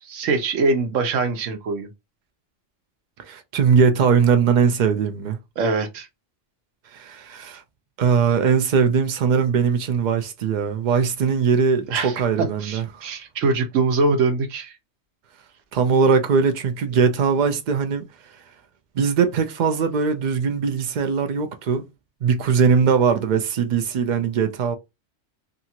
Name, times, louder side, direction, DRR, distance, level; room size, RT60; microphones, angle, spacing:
voice 1, 0.0-1.9 5.6-6.1 11.9-14.8, right 3 dB, 85° right, 1.1 m, -23 dB
voice 2, 3.2-5.4 6.9-7.6 8.0-12.9 15.7-18.0 19.0-21.8 22.2-24.7, right 6 dB, 60° right, 0.4 m, -20 dB
2.7 x 2.4 x 2.7 m
omnidirectional pair, 1.3 m